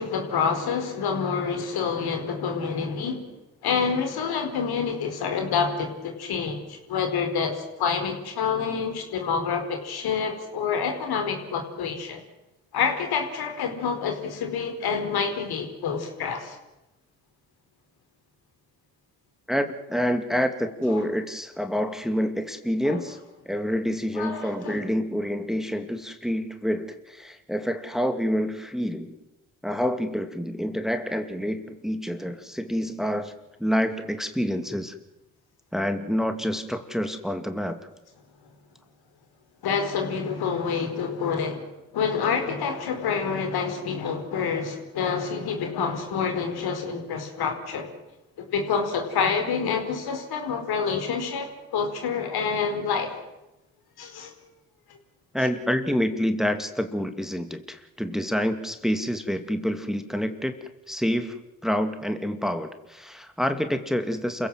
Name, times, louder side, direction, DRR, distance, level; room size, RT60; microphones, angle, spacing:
voice 1, 0.0-3.2 3.6-12.2 12.7-16.6 22.8-23.0 24.2-24.8 39.6-47.9 48.4-53.1 54.0-54.3, left 6 dB, 65° left, 5 dB, 4.7 m, -27 dB
voice 2, 19.5-23.2 23.5-29.2 29.6-33.3 33.6-35.0 35.7-37.8 55.3-60.5 60.9-61.4 61.6-64.5, equal, ahead, 7 dB, 2.5 m, -27 dB
28.5 x 16.0 x 7.7 m, 0.97 s
hypercardioid pair, 55°, 41 cm